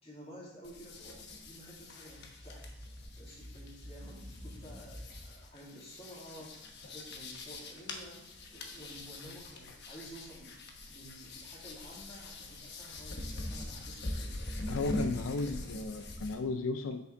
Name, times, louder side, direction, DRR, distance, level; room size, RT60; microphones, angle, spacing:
voice 1, 0.0-2.7 3.2-8.2 8.5-14.4, equal, 30° left, -4 dB, 2.5 m, -52 dB
sound 1, 0.6-16.3, left 1 dB, 55° left, 1.1 m, -43 dB
sound 2, 1.9-5.5, equal, 45° right, 1.4 m, -49 dB
voice 2, 14.7-17.0, left 3 dB, 75° left, 7 dB, 0.5 m, -34 dB
7.8 x 6.6 x 3.8 m, 0.93 s
head